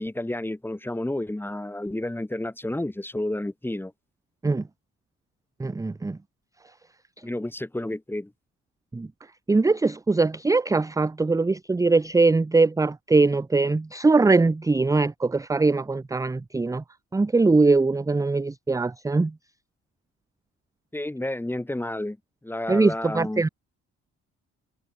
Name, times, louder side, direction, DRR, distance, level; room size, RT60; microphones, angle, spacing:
voice 1, 0.0-3.9 7.2-8.3 20.9-22.2 22.4-23.4, left 1 dB, 5° left, 1.2 m, -30 dB
voice 2, 5.6-6.2 8.9-9.1 9.5-16.8 17.1-19.3 22.7-23.5, right 3 dB, 10° right, 0.5 m, -21 dB
cardioid pair, 90°, 30 cm